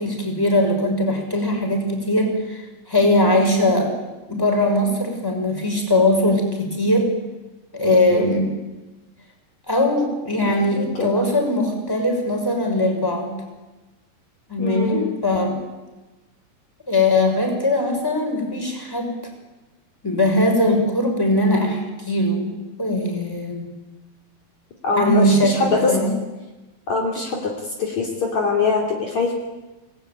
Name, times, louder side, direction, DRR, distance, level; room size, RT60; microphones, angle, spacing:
voice 1, 0.0-3.9 4.3-7.1 7.7-8.5 9.7-13.4 14.5-15.6 16.9-19.1 20.0-23.7 25.0-26.1, left 1 dB, 5° left, 2 dB, 5.7 m, -20 dB
voice 2, 8.1-8.4 10.6-11.3 14.6-15.1 20.6-20.9 24.8-25.9 26.9-27.5 27.8-29.3, left 4 dB, 55° left, 0 dB, 4.1 m, -23 dB
28.5 x 19.0 x 9.3 m, 1.1 s
omnidirectional pair, 4.0 m